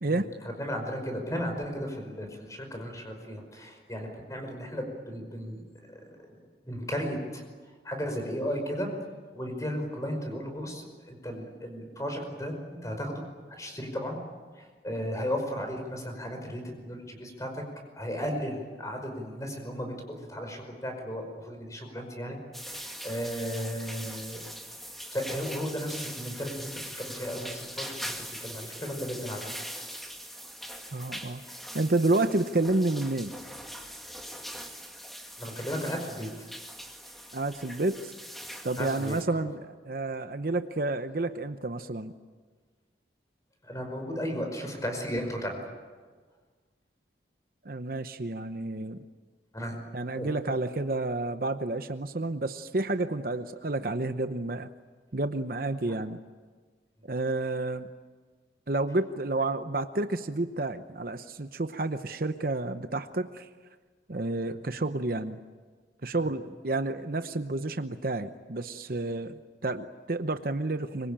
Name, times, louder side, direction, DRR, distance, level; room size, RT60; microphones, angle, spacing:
voice 1, 0.1-6.4 6.6-7.4 7.8-8.9 9.3-13.2 13.5-14.2 14.5-17.6 18.0-22.4 22.6-24.4 25.1-26.7 27.0-28.2 28.4-29.4 35.4-36.5 38.8-39.4 43.6-45.7 49.5-49.8 50.2-50.6 55.9-56.0 64.5-64.6 66.1-66.3, equal, 20° left, 4 dB, 5.3 m, -35 dB
sound 1, 22.5-39.2, equal, ahead, 2.1 m, -42 dB
voice 2, 30.9-31.4 31.7-33.3 37.3-38.1 38.6-42.1 47.6-49.0 49.9-54.7 55.1-56.2 57.1-57.9 58.7-63.5 64.1-65.4 66.0-71.1, right 2 dB, 50° right, 9 dB, 0.9 m, -30 dB
25.0 x 23.5 x 8.9 m, 1.5 s
head